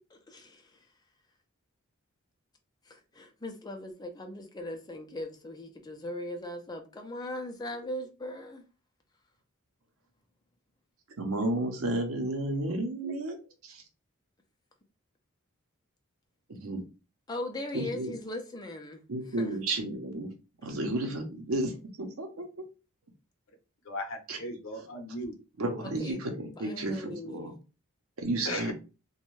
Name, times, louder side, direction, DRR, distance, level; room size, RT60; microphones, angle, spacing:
voice 1, 0.1-0.9 2.9-8.6 17.3-19.0 19.4-19.6 25.8-26.2 26.6-27.6, left 1 dB, 20° left, 0.4 m, -39 dB
voice 2, 11.2-13.4 13.6-13.8 16.5-16.8 17.7-18.1 19.1-20.3 20.6-21.7 22.0-22.5 24.3-24.4 25.6-27.5 28.2-28.7, right 2 dB, 80° right, 0.7 m, -32 dB
voice 3, 23.8-25.4 28.5-28.7, left 1 dB, 65° left, 0.7 m, -36 dB
2.5 x 2.2 x 3.1 m
head